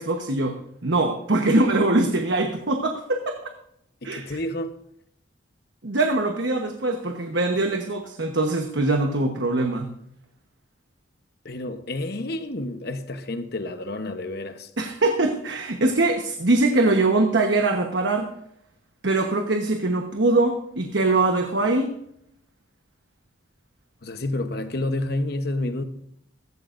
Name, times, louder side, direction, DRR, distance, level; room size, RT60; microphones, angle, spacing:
voice 1, 0.0-3.4 4.0-4.4 5.8-9.9 14.8-18.3 19.0-21.9, right 2 dB, 65° right, 1.1 m, -22 dB
voice 2, 4.0-4.7 11.4-14.7 24.0-25.8, left 2 dB, 50° left, 1.0 m, -29 dB
15.0 x 14.5 x 2.6 m
head